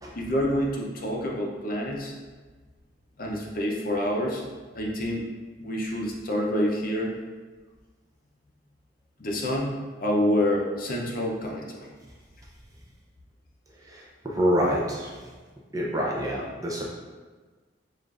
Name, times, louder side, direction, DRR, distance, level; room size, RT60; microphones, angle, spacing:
voice 1, 0.2-2.1 3.2-4.4 4.8-5.3 5.6-7.1 9.2-11.8, equal, 45° left, -1 dB, 0.6 m, -27 dB
voice 2, 13.8-15.1 15.7-16.8, equal, 20° right, -3 dB, 0.5 m, -27 dB
6.6 x 2.5 x 2.4 m, 1.4 s
head